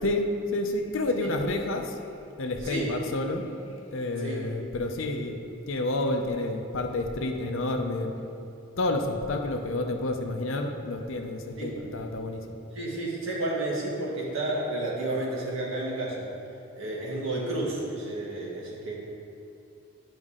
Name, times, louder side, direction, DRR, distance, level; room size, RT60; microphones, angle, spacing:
voice 1, 0.0-2.0 2.4-3.5 3.9-5.4 5.7-8.1 8.8-12.4, left 2 dB, 65° left, 5 dB, 0.6 m, -29 dB
voice 2, 12.7-16.2 16.8-18.9, right 2 dB, 65° right, -4 dB, 1.6 m, -31 dB
9.2 x 5.2 x 3.7 m, 2.7 s
head